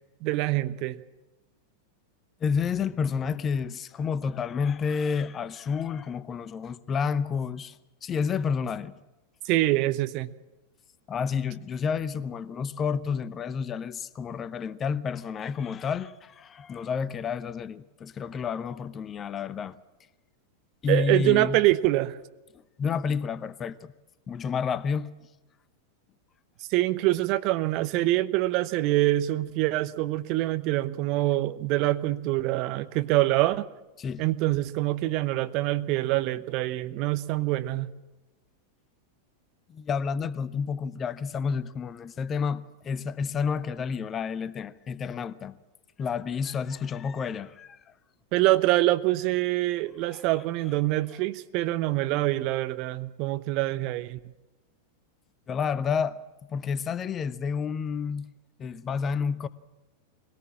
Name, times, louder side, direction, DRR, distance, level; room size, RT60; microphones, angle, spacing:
voice 1, 0.2-1.0 9.4-10.3 20.9-22.1 26.7-33.6 34.2-37.9 48.3-54.2, right 17 dB, 40° right, 0.9 m, -25 dB
voice 2, 2.4-9.0 11.1-19.8 20.8-21.6 22.8-23.9 24.3-25.1 34.0-34.2 36.6-36.7 39.7-45.6 46.0-47.8 50.1-50.2 55.5-56.2 56.5-58.3 58.6-59.5, left 6 dB, 25° left, 0.8 m, -30 dB
22.5 x 18.0 x 7.5 m
figure-of-eight pair, 90°, 0 cm